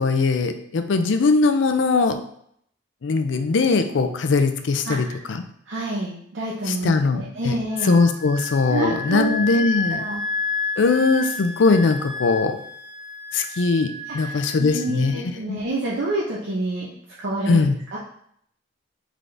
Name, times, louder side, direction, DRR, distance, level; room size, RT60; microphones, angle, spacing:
voice 1, 0.0-2.2 3.0-5.4 6.7-7.6 7.8-10.1 10.8-12.6 13.3-15.6 17.5-17.8, left 4 dB, 70° left, 7 dB, 0.4 m, -20 dB
voice 2, 4.9-5.2 5.7-7.9 8.7-9.6 9.9-10.2 14.1-16.9 17.2-17.6 17.9-18.0, right 2 dB, 65° right, -6 dB, 0.8 m, -28 dB
Wind instrument woodwind instrument, 7.7-15.2, left 3 dB, 45° left, 1.1 m, -31 dB
3.8 x 3.7 x 3.3 m, 0.68 s
head